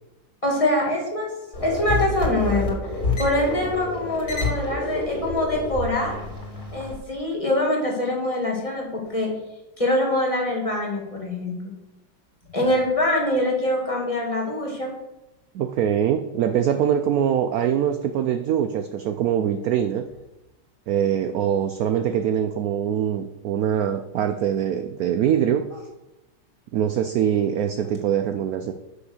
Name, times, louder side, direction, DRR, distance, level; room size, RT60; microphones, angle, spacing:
voice 1, 0.4-1.3 1.6-2.8 3.2-6.2 6.7-9.3 9.8-11.5 12.5-14.9, left 1 dB, 20° left, -1 dB, 2.2 m, -24 dB
sound 1, 1.5-7.0, left 2 dB, 75° left, 3.1 m, -28 dB
voice 2, 15.5-20.1 20.9-25.7 26.7-28.7, right 9 dB, 70° right, 7 dB, 0.9 m, -23 dB
7.9 x 5.8 x 6.5 m, 0.97 s
omnidirectional pair, 1.9 m